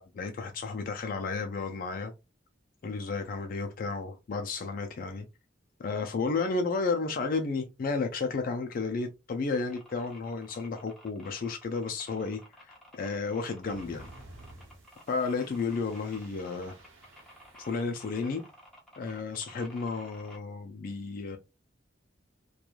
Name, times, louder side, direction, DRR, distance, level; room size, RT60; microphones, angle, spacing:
voice 1, 0.0-2.1 2.8-5.3 5.8-14.1 15.1-16.8 17.6-18.4 19.0-21.4, left 4 dB, 45° left, 0.3 m, -32 dB
sound 1, 9.5-20.4, equal, ahead, 0.8 m, -53 dB
sound 2, 13.6-18.5, right 1 dB, 90° right, 0.8 m, -53 dB
3.0 x 2.2 x 2.3 m
head